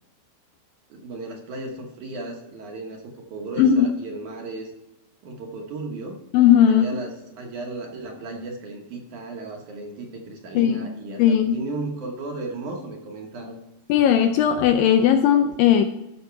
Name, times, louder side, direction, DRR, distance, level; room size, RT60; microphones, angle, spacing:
voice 1, 0.9-4.7 5.2-6.2 6.7-13.6, right 2 dB, 60° right, 1 dB, 2.3 m, -35 dB
voice 2, 3.6-3.9 6.3-6.9 10.6-10.9 11.2-11.6 13.9-15.9, left 9 dB, 80° left, 8 dB, 2.1 m, -17 dB
14.0 x 6.4 x 4.6 m, 0.95 s
omnidirectional pair, 4.5 m